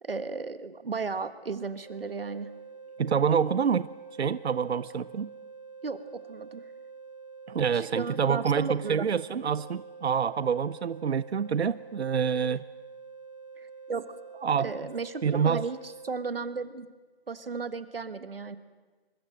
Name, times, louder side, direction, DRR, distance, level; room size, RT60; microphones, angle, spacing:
voice 1, 0.0-2.5 5.8-6.6 7.7-9.1 13.6-14.0 14.6-16.9 17.3-18.6, right 4 dB, 60° right, 1.5 m, -35 dB
sound 1, 1.8-16.1, right 5 dB, 30° right, 1.4 m, -47 dB
voice 2, 3.0-3.9 4.2-5.3 7.5-12.6 14.4-14.7 15.2-15.6, right 7 dB, 80° right, 0.7 m, -27 dB
25.5 x 23.0 x 7.6 m
hypercardioid pair, 180°, 32 cm